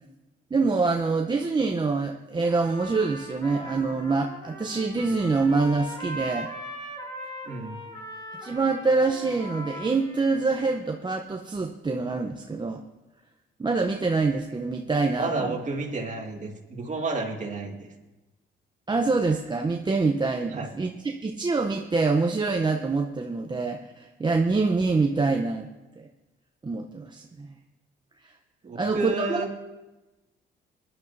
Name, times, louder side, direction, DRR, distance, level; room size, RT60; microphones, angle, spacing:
voice 1, 0.5-6.5 8.4-12.8 13.6-15.6 18.9-25.7 26.6-27.5 28.8-29.4, right 3 dB, 20° right, 2 dB, 0.8 m, -25 dB
Trumpet, 2.4-10.9, equal, 20° left, 2.5 m, -40 dB
voice 2, 7.5-7.8 15.2-17.9 20.5-20.7 28.6-29.6, right 3 dB, 40° right, 1 dB, 2.1 m, -31 dB
20.0 x 11.0 x 2.7 m, 1.1 s
cardioid pair, 90°, 20 cm